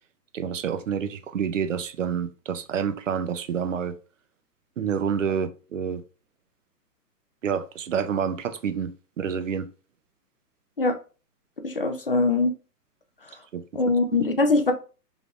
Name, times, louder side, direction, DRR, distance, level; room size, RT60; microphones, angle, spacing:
voice 1, 0.3-4.0 4.8-6.0 7.4-9.7 13.5-13.6, right 7 dB, 50° right, 0.6 m, -28 dB
voice 2, 11.6-12.5 13.7-14.7, left 3 dB, 40° left, 0.4 m, -22 dB
5.2 x 3.3 x 2.4 m
hypercardioid pair, 170°, 48 cm